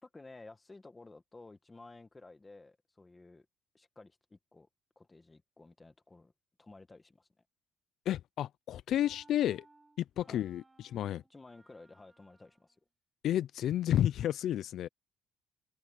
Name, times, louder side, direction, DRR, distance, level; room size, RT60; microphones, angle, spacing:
voice 1, 0.0-3.5 3.7-4.7 4.9-6.3 6.6-7.3 10.3-10.4 11.3-12.8, left 3 dB, 15° left, 1.6 m, -54 dB
voice 2, 8.1-9.6 10.0-11.2 13.2-14.9, left 11 dB, 60° left, 0.4 m, -31 dB
sound 1, 9.0-12.9, right 2 dB, 15° right, 5.3 m, -64 dB
cardioid pair, 150°, 0 cm